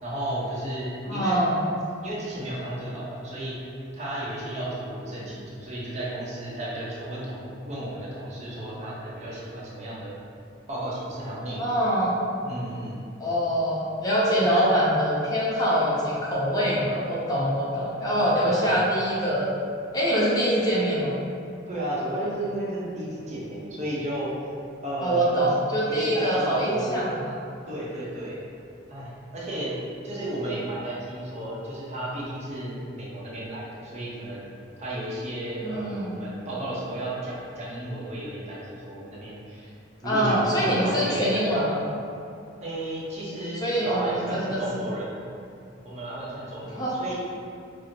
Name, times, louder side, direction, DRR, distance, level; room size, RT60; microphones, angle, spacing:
voice 1, 0.0-1.4 2.0-10.1 10.7-11.8 12.4-13.0 14.4-14.7 18.4-18.8 21.7-24.3 24.8-25.4 25.9-27.1 27.7-28.4 28.9-29.7 30.0-34.4 34.8-39.7 40.0-41.7 42.6-45.3 45.8-47.1, right 1 dB, 40° right, -6 dB, 0.6 m, -33 dB
voice 2, 1.1-1.6 11.6-12.2 13.2-19.5 19.9-21.1 25.0-27.1 35.6-36.2 40.0-41.8 43.6-44.6 46.8-47.0, equal, 20° left, -6 dB, 0.5 m, -24 dB
4.3 x 2.0 x 2.6 m, 2.4 s
head